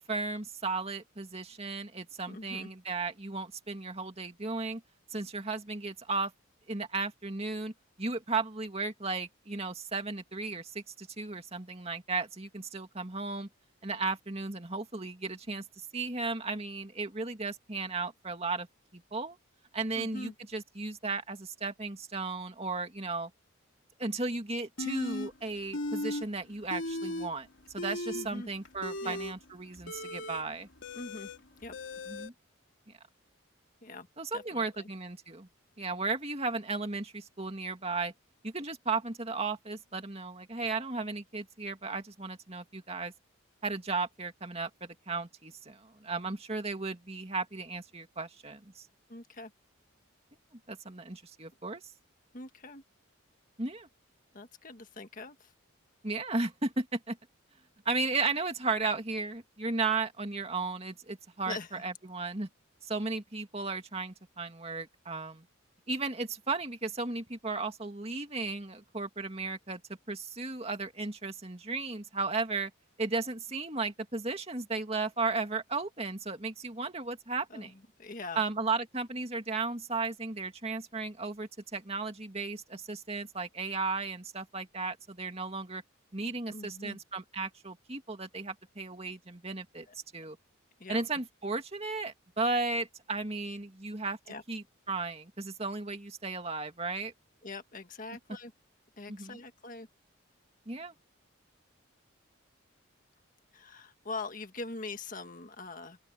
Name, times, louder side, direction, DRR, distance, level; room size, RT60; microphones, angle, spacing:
voice 1, 0.1-4.8 5.1-6.3 6.7-7.7 8.0-13.5 13.8-15.6 15.9-18.7 18.9-19.4 19.7-23.3 24.0-27.5 27.7-30.7 32.1-32.3 34.2-35.5 35.8-38.1 38.4-43.1 43.6-48.8 50.7-51.8 53.6-53.9 56.0-57.2 57.9-61.6 61.8-62.5 62.8-65.4 65.9-69.8 70.1-72.7 73.0-77.7 78.3-85.8 86.1-89.9 90.1-90.4 90.9-94.2 94.5-97.1 99.1-99.4 100.7-100.9, right 3 dB, 30° right, 2.3 m, -35 dB
voice 2, 2.3-2.7 19.9-20.3 28.1-28.5 29.0-29.2 30.9-31.3 31.6-31.8 33.8-34.1 34.3-34.9 49.1-49.5 52.3-52.8 54.3-55.5 61.4-61.8 77.5-78.4 86.5-87.0 89.9-90.0 90.8-91.0 94.3-94.4 97.4-98.5 99.0-99.9 103.5-106.0, left 3 dB, 40° left, 1.7 m, -43 dB
sound 1, 24.8-25.3 25.7-26.2 26.5-27.3 27.7-32.3, left 1 dB, 65° left, 2.9 m, -37 dB
open air
head